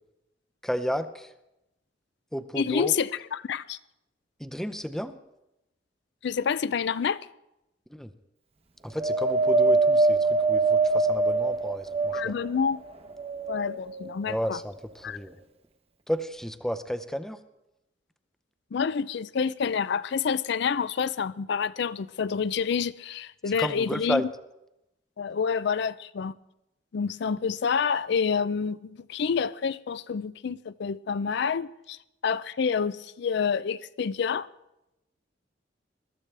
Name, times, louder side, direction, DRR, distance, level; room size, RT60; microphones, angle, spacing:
voice 1, 0.6-1.3 2.3-2.9 4.4-5.2 7.9-8.1 8.8-12.3 14.3-15.4 16.1-17.4 23.5-24.2, equal, ahead, 0.6 m, -32 dB
voice 2, 2.5-3.8 6.2-7.3 12.1-12.8 13.5-14.6 15.0-15.2 18.7-24.2 25.2-26.3 26.9-34.5, left 6 dB, 65° left, 0.4 m, -28 dB
Wind, 9.0-12.5 13.1-14.1 14.9-15.0, right 3 dB, 35° right, 0.9 m, -23 dB
21.5 x 13.5 x 3.3 m
head